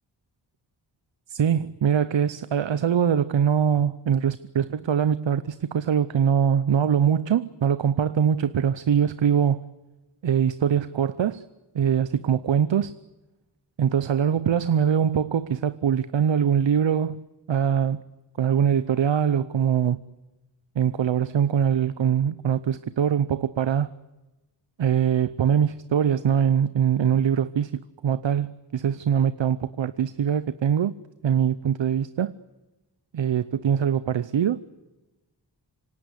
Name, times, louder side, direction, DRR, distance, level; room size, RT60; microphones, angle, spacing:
voice 1, 1.3-9.7 10.2-11.4 11.7-13.0 13.8-18.0 18.4-20.0 20.8-23.9 24.8-30.9 31.2-32.3 33.1-34.6, right 8 dB, 80° right, 0.8 m, -23 dB
26.5 x 25.5 x 8.1 m
wide cardioid pair, 130°, 44 cm